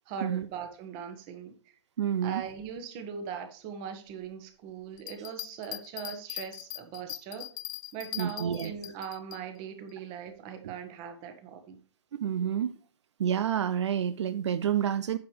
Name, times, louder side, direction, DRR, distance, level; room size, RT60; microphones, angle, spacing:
voice 1, 0.1-1.7 2.2-7.4 7.9-11.8, right 7 dB, 35° right, 6 dB, 1.5 m, -40 dB
voice 2, 2.0-2.4 8.2-8.7 10.6-10.7 12.2-12.7 13.2-15.2, right 9 dB, 70° right, 13 dB, 0.5 m, -28 dB
sound 1, 5.0-9.4, left 15 dB, 40° left, 0.5 m, -40 dB
8.9 x 7.0 x 3.3 m, 0.43 s
hypercardioid pair, 130°, 15 cm